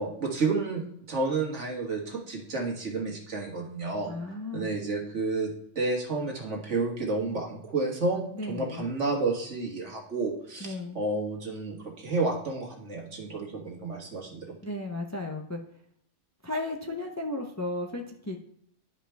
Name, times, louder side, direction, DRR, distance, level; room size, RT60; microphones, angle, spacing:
voice 1, 0.0-4.1 4.5-14.6, right 3 dB, 65° right, 0 dB, 1.9 m, -31 dB
voice 2, 4.1-4.7 8.4-8.8 10.6-11.0 14.6-15.6 16.4-18.4, left 2 dB, 20° left, 3 dB, 0.5 m, -34 dB
11.0 x 5.1 x 3.4 m, 0.72 s
omnidirectional pair, 1.3 m